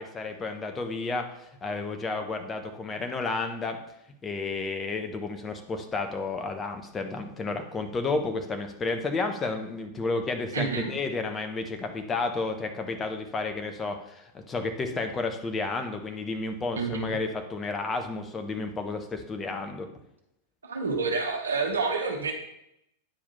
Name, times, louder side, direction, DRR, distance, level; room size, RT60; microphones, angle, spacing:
voice 1, 0.0-3.8 4.2-19.9, left 3 dB, 20° left, 5 dB, 1.2 m, -31 dB
voice 2, 10.5-10.9 16.8-17.2 20.6-22.3, right 4 dB, 70° right, 2 dB, 1.2 m, -28 dB
8.9 x 5.0 x 5.5 m, 0.80 s
figure-of-eight pair, 90°, 0 cm